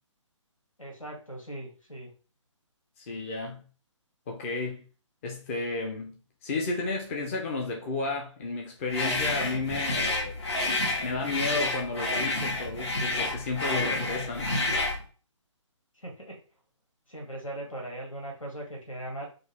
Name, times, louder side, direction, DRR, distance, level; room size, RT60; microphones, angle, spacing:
voice 1, 0.8-2.1 16.0-16.4 17.1-19.3, right 1 dB, 85° left, 1.9 m, -39 dB
voice 2, 3.0-3.6 4.3-4.8 5.2-10.3 11.0-14.6, left 3 dB, 25° left, 0.6 m, -32 dB
sound 1, 8.9-15.0, left 2 dB, 55° left, 1.3 m, -29 dB
4.0 x 2.5 x 3.3 m
figure-of-eight pair, 140°, 16 cm